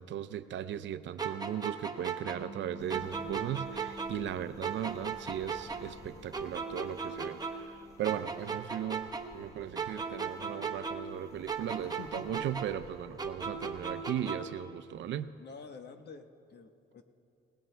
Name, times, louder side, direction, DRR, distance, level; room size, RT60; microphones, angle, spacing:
voice 1, 0.0-15.3, right 10 dB, 70° right, 13 dB, 0.6 m, -37 dB
sound 1, 1.2-4.3 4.6-7.8 8.0-11.2 11.5-14.6, right 5 dB, 20° right, 1.0 m, -37 dB
Bass guitar, 2.3-8.5, right 5 dB, 50° right, 0.9 m, -52 dB
sound 2, 2.8-14.0, left 1 dB, 15° left, 1.1 m, -56 dB
voice 2, 12.0-12.5 15.4-17.0, left 4 dB, 60° left, 6 dB, 1.1 m, -48 dB
26.5 x 18.0 x 2.2 m, 2.8 s
cardioid pair, 90°, 20 cm